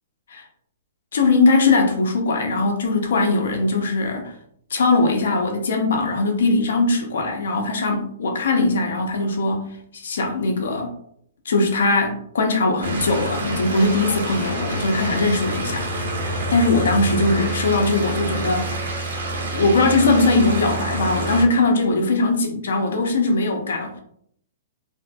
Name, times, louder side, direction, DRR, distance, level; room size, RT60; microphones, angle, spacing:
voice 1, 1.1-4.3 4.7-10.9 11.4-15.9 16.2-18.7 19.5-24.0, left 3 dB, 75° left, 3 dB, 0.6 m, -20 dB
sound 1, 12.8-21.4, right 2 dB, 85° right, 1.1 m, -27 dB
2.7 x 2.6 x 2.2 m, 0.67 s
hypercardioid pair, 160°, 0 cm